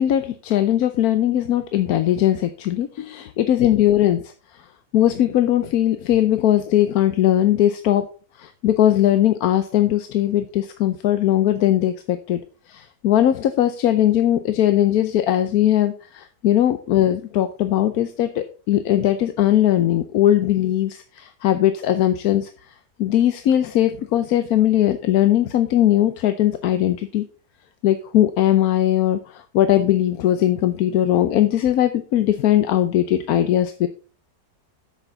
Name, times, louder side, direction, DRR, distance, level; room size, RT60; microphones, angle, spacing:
voice 1, 0.0-4.3 4.9-8.0 8.4-12.4 12.7-22.5 23.0-27.2 27.8-33.9, left 12 dB, 80° left, 9 dB, 1.2 m, -19 dB
9.9 x 7.5 x 3.9 m, 0.37 s
omnidirectional pair, 1.6 m